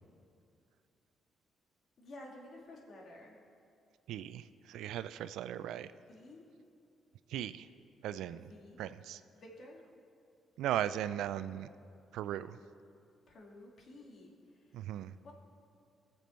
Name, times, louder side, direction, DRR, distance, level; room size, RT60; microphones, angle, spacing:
voice 1, 2.0-3.4 6.1-6.5 8.3-8.8 9.3-9.8 13.3-14.8 15.2-15.3, left 1 dB, 55° left, -1 dB, 2.3 m, -53 dB
voice 2, 4.1-5.9 7.3-7.7 8.0-8.5 8.8-9.2 10.6-11.7 12.1-12.6 14.7-15.1, right 11 dB, 85° right, 14 dB, 0.4 m, -37 dB
18.5 x 6.9 x 4.3 m, 2.4 s
cardioid pair, 90°, 0 cm